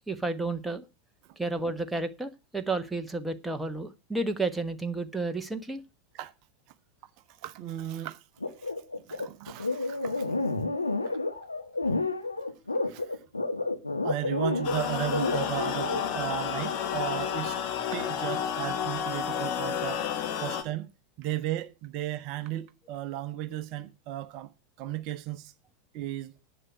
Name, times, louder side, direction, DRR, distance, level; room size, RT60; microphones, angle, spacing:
voice 1, 0.1-0.8 1.4-5.8, right 2 dB, 5° right, 1.2 m, -31 dB
voice 2, 7.4-8.2 8.6-8.7 9.1-10.4 11.0-11.1 12.9-13.2 14.0-17.6 17.9-20.0 20.4-20.9 21.2-24.5 24.8-25.5 25.9-26.3, right 13 dB, 40° right, 0.8 m, -35 dB
sound 1, 8.4-16.0, left 3 dB, 80° left, 1.6 m, -30 dB
sound 2, 14.6-20.6, left 8 dB, 40° left, 1.7 m, -31 dB
11.0 x 7.7 x 6.1 m
figure-of-eight pair, 90°, 0 cm